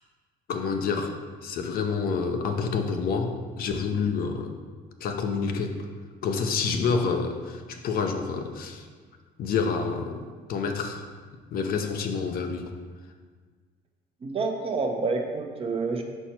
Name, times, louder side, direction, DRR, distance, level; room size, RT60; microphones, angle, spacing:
voice 1, 0.5-4.5 5.0-5.8 6.2-8.8 9.4-10.2 10.5-11.0 11.5-12.7, left 5 dB, 60° left, 5 dB, 0.6 m, -28 dB
voice 2, 14.2-16.0, right 3 dB, 35° right, 3 dB, 0.8 m, -28 dB
5.6 x 4.5 x 4.3 m, 1.5 s
cardioid pair, 110°, 17 cm